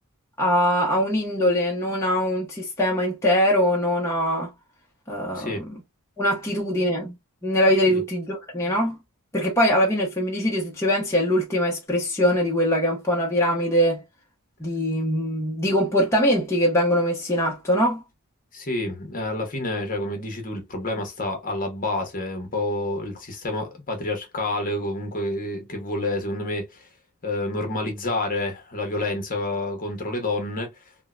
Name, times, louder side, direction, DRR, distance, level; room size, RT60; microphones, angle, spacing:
voice 1, 0.4-4.5 5.1-5.8 6.2-7.1 7.4-9.0 9.3-14.0 14.6-18.0, equal, 10° left, 0.8 m, -22 dB
voice 2, 5.3-5.7 7.9-8.0 18.5-26.9 27.2-30.7, left 2 dB, 40° left, 1.1 m, -28 dB
3.6 x 2.1 x 2.4 m
head